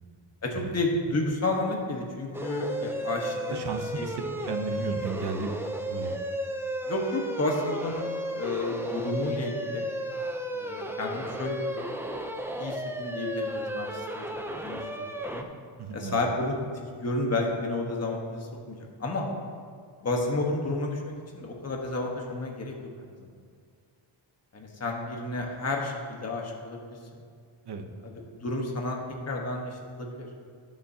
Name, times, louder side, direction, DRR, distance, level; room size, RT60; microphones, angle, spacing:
voice 1, 0.4-3.7 3.9-4.4 6.9-9.9 10.5-11.6 12.6-14.2 14.6-15.5 15.9-19.3 20.0-23.1 24.5-27.2 28.0-29.0 29.3-30.3, left 2 dB, 30° left, 0 dB, 1.3 m, -31 dB
sound 1, 2.3-15.4, right 1 dB, 5° right, 0.5 m, -34 dB
voice 2, 3.5-5.5 5.9-6.2 15.8-16.2 27.7-27.8, right 4 dB, 50° right, 5 dB, 0.9 m, -34 dB
19.0 x 7.3 x 2.8 m, 2.1 s
wide cardioid pair, 175°, 50 cm